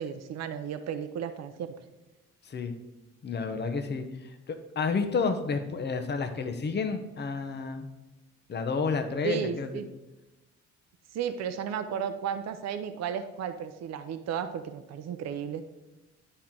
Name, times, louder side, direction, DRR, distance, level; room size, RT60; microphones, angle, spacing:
voice 1, 0.0-1.7 9.2-9.9 11.1-15.6, right 8 dB, 60° right, 9 dB, 0.6 m, -34 dB
voice 2, 3.2-7.9 8.5-9.8, left 4 dB, 35° left, 7 dB, 0.8 m, -30 dB
9.7 x 4.5 x 3.7 m, 1.0 s
cardioid pair, 90°, 30 cm